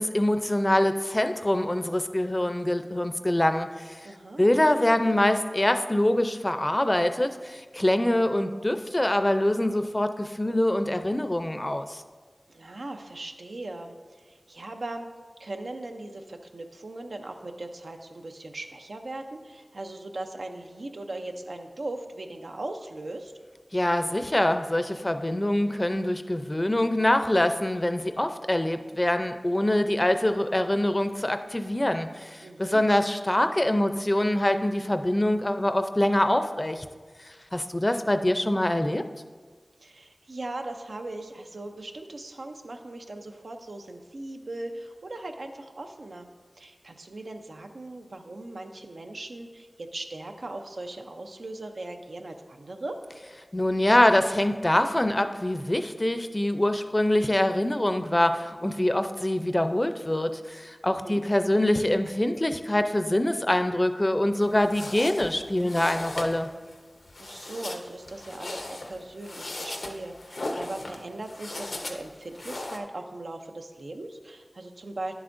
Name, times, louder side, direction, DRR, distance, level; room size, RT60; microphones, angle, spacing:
voice 1, 0.0-4.0 4.4-12.0 23.7-36.9 37.2-39.0 53.5-66.5, left 1 dB, 25° left, 8 dB, 0.4 m, -24 dB
voice 2, 4.0-4.5 12.5-15.1 15.4-23.3 32.4-32.9 39.8-46.3 46.6-53.0 60.9-61.2 67.2-75.1, right 2 dB, 90° right, 4 dB, 0.6 m, -39 dB
sound 1, 64.4-72.8, left 2 dB, 90° left, 0.6 m, -38 dB
10.0 x 7.9 x 2.6 m, 1.5 s
wide cardioid pair, 65°, 0 cm